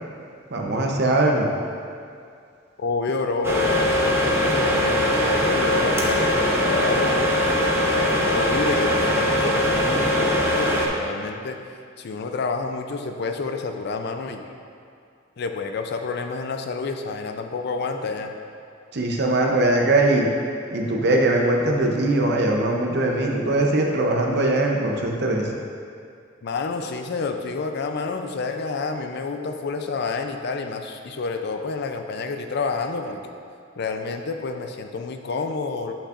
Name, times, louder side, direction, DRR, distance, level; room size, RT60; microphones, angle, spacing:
voice 1, 0.5-1.5 18.9-20.3 20.7-25.5, right 2 dB, 55° right, 1 dB, 0.7 m, -21 dB
voice 2, 2.8-7.5 7.9-11.6 12.0-14.5 15.4-18.3 26.4-33.3 33.8-35.9, left 4 dB, 55° left, 5 dB, 0.4 m, -29 dB
sound 1, 3.4-10.9, left 1 dB, 15° right, 0.6 m, -21 dB
8.5 x 5.4 x 2.5 m, 2.4 s
head